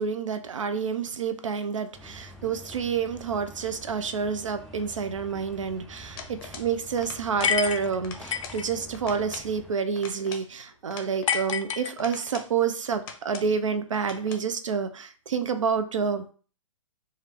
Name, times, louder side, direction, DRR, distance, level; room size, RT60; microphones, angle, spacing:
voice 1, 0.0-16.3, right 6 dB, 70° right, 8 dB, 0.5 m, -28 dB
sound 1, 1.9-9.7, equal, ahead, 0.4 m, -47 dB
sound 2, 6.2-6.7 7.0-7.6 7.9-8.6 8.9-9.5 9.9-11.5 12.0-12.5 12.9-13.5 13.9-14.5, left 6 dB, 45° left, 0.7 m, -43 dB
sound 3, 7.4-8.7 11.3-12.4, left 7 dB, 70° left, 0.4 m, -28 dB
3.2 x 2.5 x 4.1 m, 0.40 s
figure-of-eight pair, 115°, 17 cm